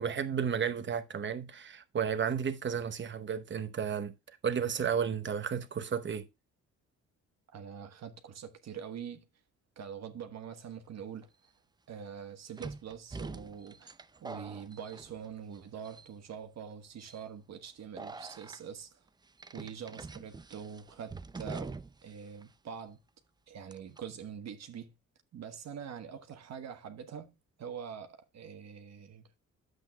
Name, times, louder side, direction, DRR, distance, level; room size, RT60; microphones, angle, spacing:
voice 1, 0.0-4.1 4.4-6.3, right 7 dB, 40° right, 0.9 m, -32 dB
voice 2, 7.5-9.3 9.8-11.3 11.9-13.9 14.2-19.0 19.5-21.7 22.0-23.0 23.5-25.0 25.3-29.4, right 7 dB, 60° right, 1.2 m, -44 dB
sound 1, 11.2-11.3 12.6-15.6 15.8-16.4 17.0-17.2 18.0-18.6 19.4-22.1 22.4-22.5 23.7-24.0, right 3 dB, 15° right, 0.4 m, -45 dB
10.5 x 8.0 x 2.2 m
cardioid pair, 90°, 30 cm